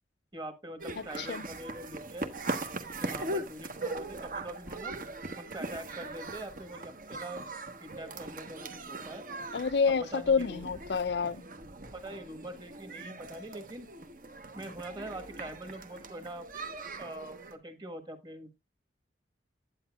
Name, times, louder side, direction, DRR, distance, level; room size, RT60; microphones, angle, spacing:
voice 1, 0.3-2.3 2.9-5.0 5.4-7.4 7.8-9.2 9.9-10.6 11.9-13.9 14.5-16.4 17.0-18.6, right 1 dB, 25° right, 1.4 m, -43 dB
sound 1, 0.8-17.5, right 2 dB, 45° right, 1.1 m, -40 dB
voice 2, 9.5-11.4, left 5 dB, 65° left, 0.5 m, -28 dB
10.0 x 9.0 x 2.4 m
head